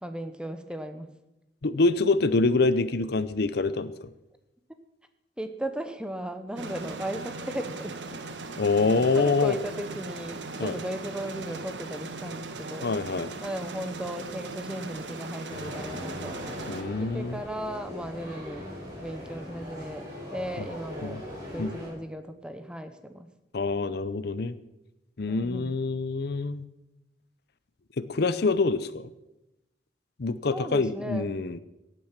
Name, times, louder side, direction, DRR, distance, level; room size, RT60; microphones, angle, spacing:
voice 1, 0.0-1.1 5.4-8.2 9.1-12.9 13.4-16.4 17.0-18.7 19.0-20.1 20.3-21.2 21.5-23.3 25.3-25.7 30.5-31.3, right 1 dB, 5° right, 8 dB, 0.9 m, -36 dB
voice 2, 1.6-4.1 8.6-9.6 10.6-10.8 12.8-13.3 16.7-17.4 20.6-20.7 21.0-21.2 21.6-21.8 23.5-24.6 25.2-26.6 28.0-29.1 30.2-31.6, left 3 dB, 60° left, 14 dB, 0.6 m, -26 dB
sound 1, 6.6-16.8, right 3 dB, 80° right, 1.3 m, -39 dB
sound 2, 15.5-21.9, left 1 dB, 20° right, 6.7 m, -40 dB
17.0 x 9.2 x 5.8 m, 0.90 s
head